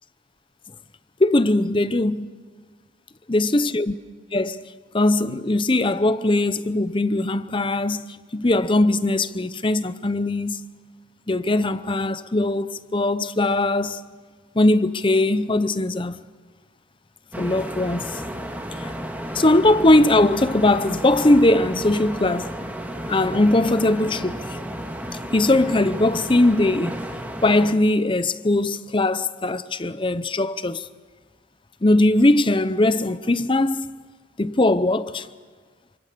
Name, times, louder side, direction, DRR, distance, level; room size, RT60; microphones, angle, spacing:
voice 1, 1.2-2.3 3.3-3.9 4.3-4.6 4.9-8.0 8.3-10.6 11.3-14.0 14.5-16.2 17.4-18.2 18.8-18.9 19.3-22.5 23.1-24.6 25.3-27.0 27.4-30.9 31.8-33.9 34.4-35.3, left 2 dB, 25° left, 0.7 m, -20 dB
sound 1, 17.3-27.7, equal, 10° right, 1.8 m, -32 dB
28.0 x 26.0 x 6.8 m
head